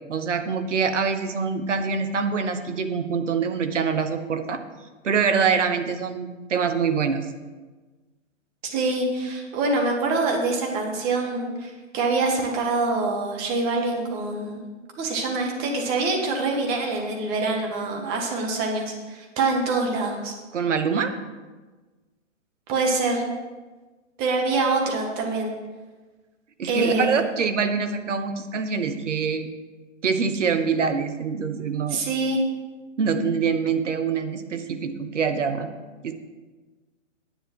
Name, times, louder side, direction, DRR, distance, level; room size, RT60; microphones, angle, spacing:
voice 1, 0.1-4.6 5.0-7.3 20.5-21.1 26.6-29.5 30.0-32.0 33.0-35.7 36.0-36.1, right 5 dB, 65° right, 8 dB, 1.2 m, -25 dB
voice 2, 8.7-14.6 15.0-20.3 22.7-23.2 24.2-25.5 26.7-27.2 31.9-32.4, right 3 dB, 25° right, 0 dB, 1.8 m, -25 dB
10.0 x 9.0 x 4.7 m, 1.3 s
figure-of-eight pair, 130°, 39 cm